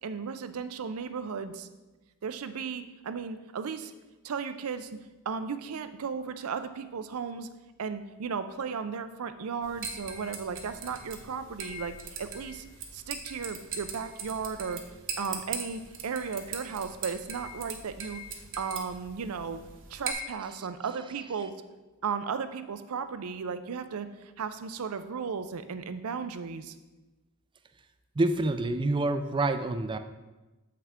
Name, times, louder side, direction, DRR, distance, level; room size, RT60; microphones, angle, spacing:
voice 1, 0.0-1.7 2.2-3.9 4.2-4.9 5.3-7.5 7.8-12.6 12.9-14.8 15.2-18.2 18.6-19.6 19.9-21.5 22.0-26.8, right 6 dB, 75° right, 11 dB, 0.5 m, -35 dB
sound 1, 9.6-20.1, right 5 dB, 60° right, 1.0 m, -41 dB
voice 2, 28.2-30.0, right 2 dB, 20° right, 9 dB, 0.4 m, -27 dB
7.6 x 5.7 x 3.6 m, 1.1 s
head